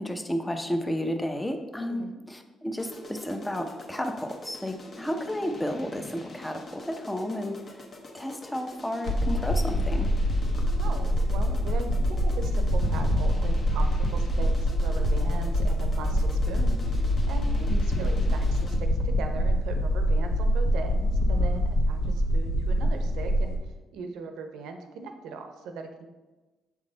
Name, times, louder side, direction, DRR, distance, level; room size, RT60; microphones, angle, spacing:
voice 1, 0.0-7.6 8.1-10.1 17.7-18.1, equal, 10° left, 6 dB, 0.6 m, -32 dB
sound 1, 2.8-19.0, left 1 dB, 45° left, 1.0 m, -45 dB
sound 2, 9.1-23.6, equal, 80° left, 1.0 m, -25 dB
voice 2, 10.8-23.6 23.9-26.1, right 4 dB, 85° right, 6 dB, 0.7 m, -39 dB
7.3 x 3.7 x 3.9 m, 1.2 s
cardioid pair, 90°, 0 cm